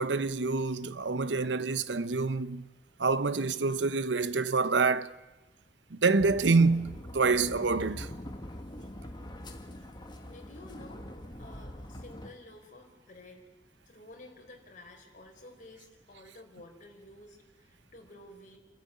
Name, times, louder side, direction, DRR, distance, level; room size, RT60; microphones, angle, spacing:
voice 1, 0.0-2.7 3.0-5.1 5.9-8.1, right 4 dB, 90° right, 0.9 m, -27 dB
sound 1, 6.2-12.3, left 1 dB, 25° left, 2.1 m, -43 dB
voice 2, 10.2-11.1 11.4-13.4 13.9-18.6, left 1 dB, 45° left, 4.4 m, -51 dB
28.5 x 13.5 x 9.7 m
head